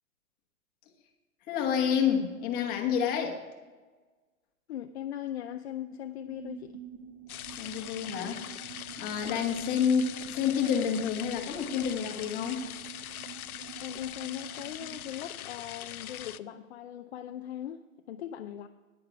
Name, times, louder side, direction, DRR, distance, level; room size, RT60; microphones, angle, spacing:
voice 1, 1.5-3.4 7.6-8.4 9.0-12.7, left 7 dB, 20° left, 2 dB, 1.4 m, -29 dB
voice 2, 4.7-6.8 9.2-9.6 13.8-18.7, left 11 dB, 50° left, 7 dB, 0.6 m, -39 dB
sound 1, 6.3-15.1, right 9 dB, 30° right, 0.9 m, -48 dB
sound 2, 7.3-16.4, left 12 dB, 90° left, 0.6 m, -42 dB
10.0 x 9.9 x 4.7 m, 1.3 s
hypercardioid pair, 150°, 42 cm